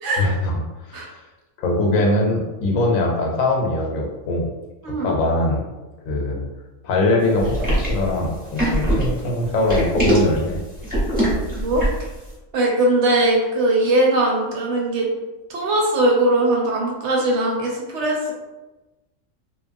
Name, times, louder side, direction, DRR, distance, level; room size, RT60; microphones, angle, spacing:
voice 1, 0.2-0.5 0.9-1.1 1.6-4.5 5.0-5.6 6.1-6.4 6.8-10.6, left 2 dB, 80° left, 0 dB, 1.0 m, -21 dB
sound 1, 7.4-12.1, right 1 dB, 10° right, 0.8 m, -22 dB
voice 2, 11.6-11.9 12.5-15.1 15.5-18.3, right 1 dB, 65° right, -1 dB, 0.8 m, -20 dB
3.0 x 2.2 x 2.5 m, 1.1 s
omnidirectional pair, 1.4 m